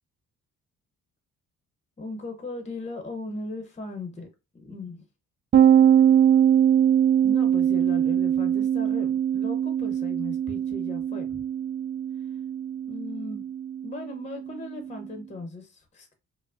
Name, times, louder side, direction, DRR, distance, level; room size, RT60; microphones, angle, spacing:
voice 1, 2.0-4.3 4.5-5.0 7.2-11.4 12.9-13.4 13.8-16.1, left 2 dB, 25° left, 0.8 m, -38 dB
sound 1, 5.5-15.0, right 9 dB, 35° right, 0.4 m, -22 dB
4.4 x 2.1 x 2.5 m
cardioid pair, 90°, 30 cm